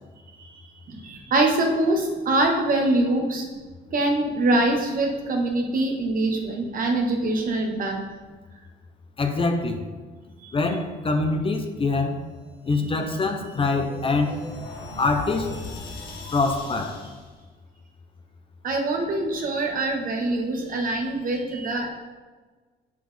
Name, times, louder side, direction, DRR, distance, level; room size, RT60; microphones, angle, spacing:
voice 1, 0.9-3.5 3.9-8.0 10.4-10.5 18.6-21.9, right 2 dB, 50° right, 2 dB, 1.3 m, -24 dB
voice 2, 9.2-9.8 10.5-12.2 12.7-14.4 15.0-15.5 16.3-16.9, left 3 dB, 30° left, 5 dB, 0.8 m, -24 dB
sound 1, 12.8-17.3, left 2 dB, 70° left, 2.0 m, -39 dB
7.6 x 6.3 x 3.5 m, 1.4 s
cardioid pair, 110°, 18 cm